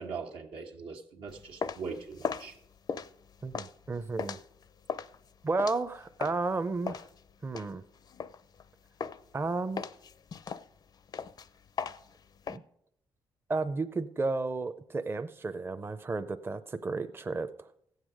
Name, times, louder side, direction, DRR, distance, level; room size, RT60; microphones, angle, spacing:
voice 1, 0.0-2.6, right 5 dB, 85° right, 2 dB, 1.5 m, -41 dB
sound 1, 1.3-6.5 6.9-8.7 9.0-9.4 9.8-12.6, left 6 dB, 50° left, 0.5 m, -38 dB
voice 2, 3.4-4.4 5.4-7.0 7.4-7.8 9.3-9.9 12.5-12.6 13.5-17.7, right 3 dB, 25° right, 9 dB, 0.6 m, -32 dB
15.0 x 8.1 x 5.0 m, 0.74 s
cardioid pair, 80°, 9 cm